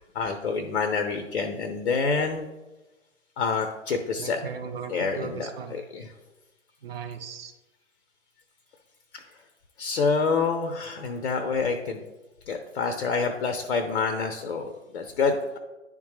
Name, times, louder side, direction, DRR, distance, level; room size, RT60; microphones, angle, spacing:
voice 1, 0.1-2.5 3.4-4.4 4.9-6.1 9.8-12.0 12.5-15.6, left 4 dB, 55° left, 6 dB, 0.7 m, -27 dB
voice 2, 4.2-5.8 6.8-7.5, right 6 dB, 50° right, 6 dB, 0.7 m, -37 dB
10.0 x 3.7 x 3.1 m, 1.1 s
figure-of-eight pair, 125°, 40 cm